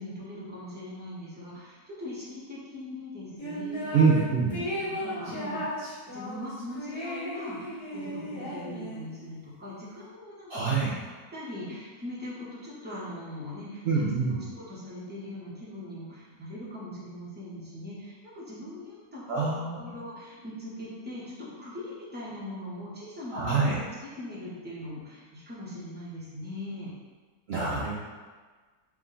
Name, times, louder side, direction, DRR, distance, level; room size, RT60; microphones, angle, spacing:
voice 1, 0.0-3.9 4.4-5.6 6.1-10.6 11.3-19.5 19.7-23.5 24.0-26.9, left 1 dB, 10° right, -9 dB, 0.6 m, -41 dB
sound 1, 3.4-4.2 4.5-9.2, equal, 75° left, 1.8 m, -35 dB
voice 2, 3.9-4.5 10.5-10.9 13.8-14.4 19.3-19.8 23.3-23.8 27.5-28.0, right 4 dB, 75° right, -7 dB, 0.5 m, -25 dB
3.6 x 2.2 x 3.7 m, 1.4 s
omnidirectional pair, 1.7 m